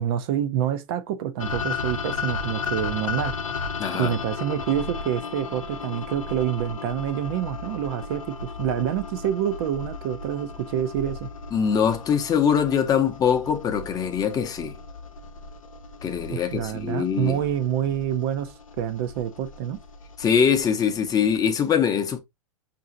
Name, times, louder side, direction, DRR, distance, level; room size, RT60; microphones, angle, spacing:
voice 1, 0.0-3.3 3.9-11.3 16.3-19.8, right 10 dB, 50° right, 0.5 m, -27 dB
sound 1, 1.4-21.4, left 4 dB, 90° left, 0.7 m, -35 dB
voice 2, 3.8-4.1 11.5-14.7 16.0-17.4 20.2-22.2, left 7 dB, 20° left, 0.7 m, -23 dB
5.4 x 2.6 x 2.5 m
hypercardioid pair, 115°, 17 cm